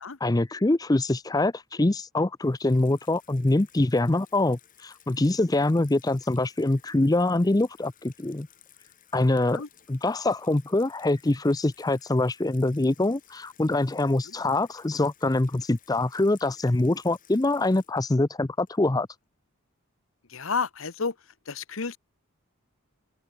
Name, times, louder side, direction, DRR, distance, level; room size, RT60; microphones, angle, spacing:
voice 1, 0.2-8.5 9.1-9.6 9.9-19.1, left 2 dB, 15° left, 0.5 m, -24 dB
Water tap faucet / Sink (filling or washing), 2.4-19.1, left 10 dB, 40° left, 4.4 m, -57 dB
voice 2, 20.3-21.1 21.5-22.0, left 5 dB, 70° left, 1.1 m, -31 dB
open air
head